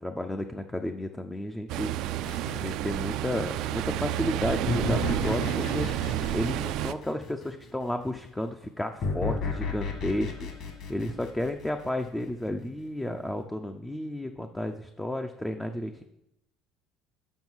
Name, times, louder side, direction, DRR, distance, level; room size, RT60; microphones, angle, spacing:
voice 1, 0.0-1.9 2.5-5.9 6.3-10.5 10.9-16.0, left 1 dB, 5° left, 5 dB, 0.4 m, -32 dB
Ocean, 1.7-6.9, right 13 dB, 60° right, 0.4 m, -30 dB
sound 1, 2.2-3.5 4.7-7.7 9.0-12.2, left 4 dB, 50° left, 1.5 m, -34 dB
7.2 x 5.6 x 6.1 m, 0.84 s
cardioid pair, 155°, 0 cm